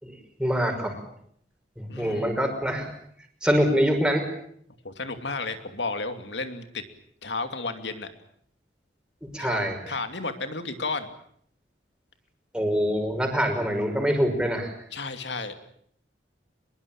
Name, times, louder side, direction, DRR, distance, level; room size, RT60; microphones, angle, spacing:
voice 1, 0.0-1.0 1.8-2.9 3.4-4.3 9.3-9.8 12.5-14.7, equal, 5° right, 3 dB, 5.8 m, -25 dB
voice 2, 1.9-2.4 4.8-6.8 7.2-8.1 9.4-11.1 14.9-15.5, left 3 dB, 75° left, 8 dB, 2.8 m, -32 dB
24.0 x 22.0 x 8.8 m, 0.66 s
head